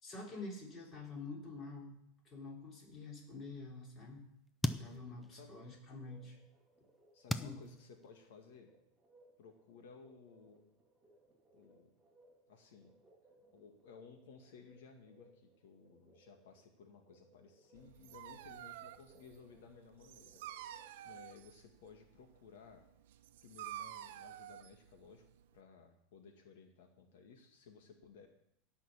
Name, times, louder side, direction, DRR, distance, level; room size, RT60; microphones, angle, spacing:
voice 1, 0.0-2.0 2.2-4.2 4.7-6.4 7.3-7.6, left 3 dB, 25° left, -1 dB, 3.3 m, -47 dB
sound 1, 4.3-6.1 6.5-8.6, left 1 dB, 5° left, 0.5 m, -41 dB
sound 2, 5.6-21.0, right 2 dB, 15° right, 3.1 m, -68 dB
voice 2, 7.1-8.7 9.4-10.6 11.5-11.9 12.5-12.9 13.5-20.4 21.0-22.8 23.4-25.2 25.5-28.3, left 5 dB, 80° left, 3 dB, 2.0 m, -58 dB
Dog, 17.7-25.6, right 12 dB, 75° right, 0.8 m, -50 dB
17.0 x 5.9 x 7.2 m, 0.73 s
supercardioid pair, 165°, 0 cm